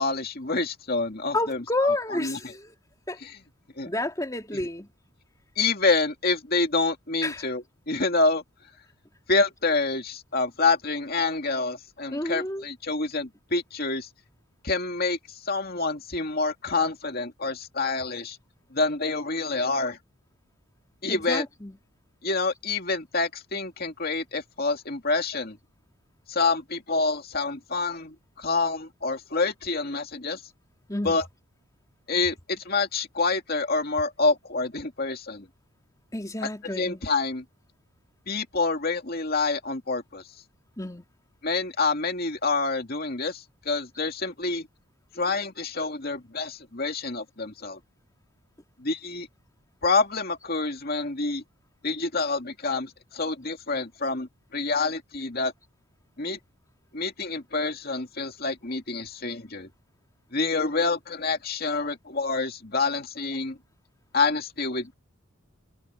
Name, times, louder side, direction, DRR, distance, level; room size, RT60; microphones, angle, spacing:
voice 1, 0.0-2.5 3.2-3.4 3.8-3.9 4.5-4.7 5.6-8.4 9.3-14.1 14.6-18.4 18.7-20.0 21.0-21.4 22.2-25.6 26.3-30.4 31.0-31.3 32.1-35.5 36.8-37.4 38.3-40.2 41.4-44.7 45.1-47.8 48.8-49.3 49.8-51.4 51.8-55.5 56.2-56.4 56.9-59.7 60.3-63.6 64.1-64.9, left 3 dB, 45° left, 2.4 m, -27 dB
voice 2, 1.3-2.7 3.1-3.2 3.8-4.9 7.2-7.5 12.1-12.6 21.1-21.7 30.9-31.2 36.1-37.0 40.8-41.0, left 2 dB, 15° left, 3.2 m, -30 dB
head